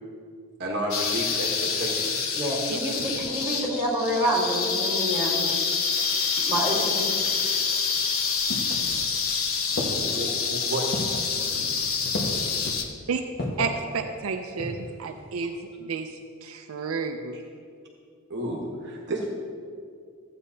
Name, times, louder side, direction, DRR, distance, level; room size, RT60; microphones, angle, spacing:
voice 1, 0.6-2.3 4.9-5.0 9.7-10.9 17.3-17.4 18.3-19.3, right 1 dB, 55° right, -1 dB, 1.2 m, -32 dB
sound 1, 0.9-12.8, left 5 dB, 75° left, 0.9 m, -27 dB
voice 2, 2.3-5.5 6.4-7.1, equal, 15° right, -8 dB, 2.8 m, -27 dB
sound 2, 8.0-9.3 9.8-10.3 10.9-11.3 12.1-12.6 13.4-13.8 14.3-14.9 15.2-15.3, left 1 dB, 50° left, 1.4 m, -32 dB
voice 3, 13.6-15.5 15.8-16.1 16.4-17.4, right 5 dB, 80° right, 5 dB, 0.5 m, -31 dB
14.5 x 8.7 x 2.8 m, 2.3 s
head